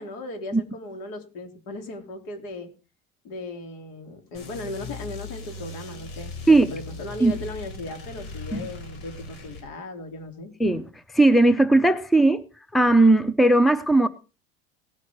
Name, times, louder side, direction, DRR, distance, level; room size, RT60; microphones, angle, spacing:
voice 1, 0.0-2.7 3.2-10.5, left 2 dB, 65° left, 3.5 m, -37 dB
sound 1, 4.3-9.7, left 3 dB, 90° left, 5.1 m, -39 dB
voice 2, 10.6-12.4 12.7-14.1, right 2 dB, ahead, 0.5 m, -18 dB
18.0 x 6.4 x 4.4 m
supercardioid pair, 130°, 29 cm